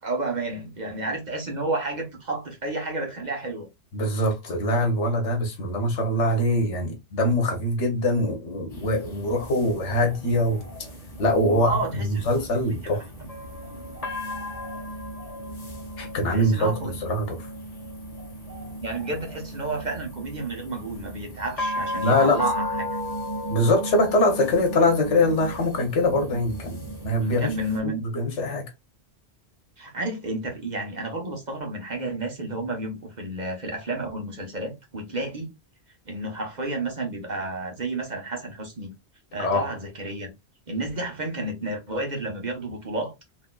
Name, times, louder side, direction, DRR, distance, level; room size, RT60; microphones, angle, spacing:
voice 1, 0.0-3.7 11.4-12.2 12.8-13.3 16.3-16.9 18.8-23.0 27.2-28.0 29.8-35.5 36.1-38.9 39.3-40.3 40.7-43.1, right 2 dB, 40° right, 1.1 m, -31 dB
voice 2, 3.9-10.6 11.2-13.1 16.0-17.5 22.0-22.4 23.5-27.5 27.8-28.7 39.4-39.7, left 1 dB, 85° left, 1.3 m, -23 dB
sound 1, 8.7-27.8, equal, 35° left, 1.4 m, -35 dB
4.1 x 2.8 x 2.3 m
omnidirectional pair, 1.2 m